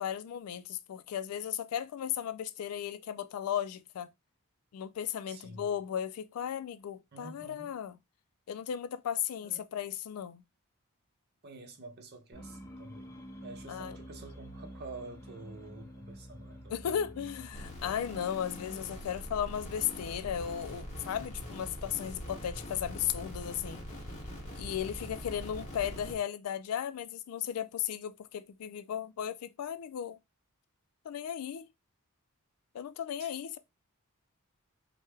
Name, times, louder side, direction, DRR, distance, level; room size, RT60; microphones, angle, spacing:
voice 1, 0.0-4.1 4.7-8.0 8.5-10.4 13.7-14.0 16.7-23.8 24.6-30.2 31.0-31.7 32.7-33.6, left 9 dB, 75° left, 0.3 m, -35 dB
voice 2, 5.3-5.7 7.1-7.7 9.4-9.6 11.4-13.2 13.4-16.9 33.2-33.3, right 3 dB, 50° right, 0.7 m, -48 dB
sound 1, 12.3-21.9, equal, 15° left, 0.5 m, -50 dB
sound 2, 17.5-26.2, equal, 30° left, 1.0 m, -43 dB
3.2 x 2.1 x 3.2 m
head